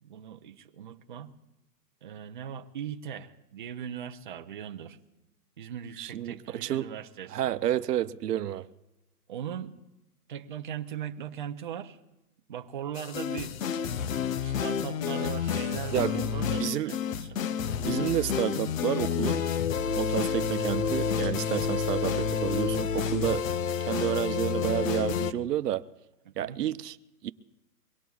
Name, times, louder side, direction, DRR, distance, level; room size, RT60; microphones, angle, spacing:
voice 1, 0.0-1.3 2.0-5.0 5.6-7.5 9.3-9.8 10.3-12.0 12.5-13.6 14.4-17.4 26.3-26.6, right 9 dB, 35° right, 0.5 m, -39 dB
voice 2, 6.0-6.9 7.3-8.7 15.9-16.3 16.6-16.9 17.8-19.5 19.9-23.4 23.8-25.9 26.4-27.0 27.2-27.3, right 12 dB, 75° right, 0.8 m, -30 dB
sound 1, 13.0-25.3, left 7 dB, 55° left, 0.6 m, -29 dB
24.0 x 18.5 x 2.3 m
hypercardioid pair, 165°, 47 cm